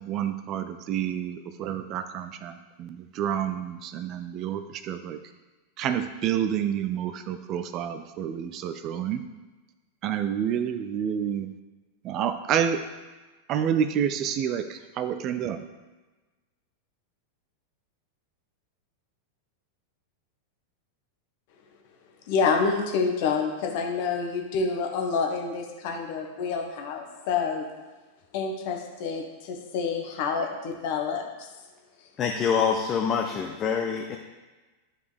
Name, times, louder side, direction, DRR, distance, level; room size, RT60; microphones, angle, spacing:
voice 1, 0.0-5.2 5.8-9.2 10.0-11.5 12.0-12.8 13.5-15.6, right 9 dB, 35° right, 10 dB, 0.4 m, -29 dB
voice 2, 22.3-27.7 28.3-31.2, left 5 dB, 50° left, 2 dB, 1.2 m, -28 dB
voice 3, 32.2-34.2, left 6 dB, 30° left, 2 dB, 0.6 m, -25 dB
10.5 x 4.9 x 3.4 m, 1.2 s
figure-of-eight pair, 90°, 0 cm